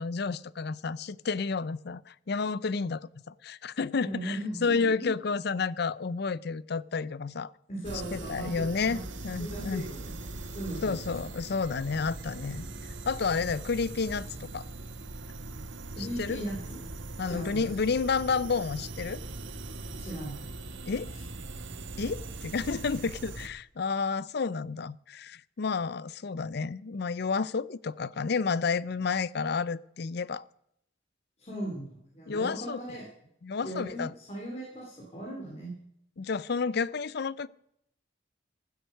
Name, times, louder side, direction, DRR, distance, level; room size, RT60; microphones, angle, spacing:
voice 1, 0.0-3.0 3.3-7.5 8.1-9.0 9.2-9.8 10.8-12.6 13.1-14.6 16.0-16.4 17.2-19.2 20.9-21.1 22.0-30.5 32.3-32.8 33.4-34.1 36.2-37.5, left 5 dB, 55° left, 19 dB, 0.5 m, -30 dB
voice 2, 4.0-5.1 7.7-9.0 9.4-10.9 11.2-11.3 16.0-16.8 17.2-17.7 19.9-20.5 21.1-21.2 31.4-33.1 33.6-35.7, right 1 dB, 35° left, -3 dB, 3.5 m, -38 dB
sound 1, 7.8-23.5, right 2 dB, 75° right, 1.2 m, -41 dB
15.5 x 8.0 x 6.4 m, 0.73 s
head